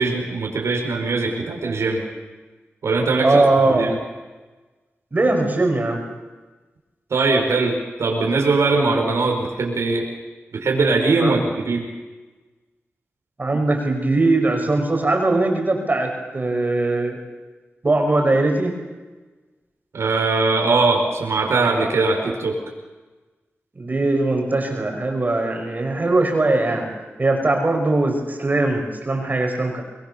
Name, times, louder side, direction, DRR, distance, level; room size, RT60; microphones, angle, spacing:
voice 1, 0.0-2.0 2.8-3.9 7.1-10.1 10.5-11.9 19.9-22.6, right 3 dB, 85° right, 1 dB, 5.3 m, -21 dB
voice 2, 3.2-3.9 5.1-6.0 11.2-11.5 13.4-17.2 17.8-18.8 23.7-26.9 27.2-29.8, right 2 dB, 40° right, 3 dB, 5.7 m, -20 dB
25.5 x 22.0 x 7.0 m, 1.2 s
wide cardioid pair, 75°, 5 cm